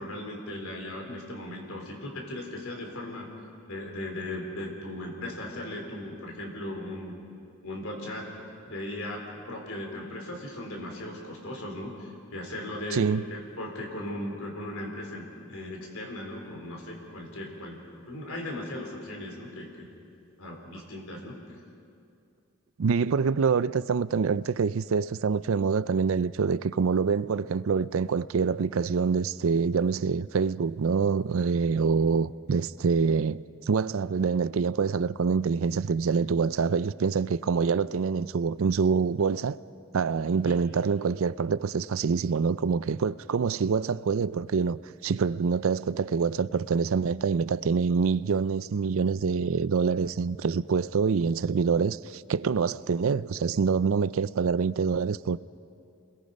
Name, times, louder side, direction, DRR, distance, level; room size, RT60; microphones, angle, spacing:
voice 1, 0.0-3.3 3.6-7.1 7.6-8.4 8.7-19.9 20.4-21.4 40.5-40.6, left 1 dB, 80° left, 3.9 m, -37 dB
voice 2, 12.9-13.2 22.8-33.4 33.7-39.6 39.9-55.4, right 5 dB, 70° right, 0.4 m, -26 dB
29.5 x 21.5 x 5.4 m
head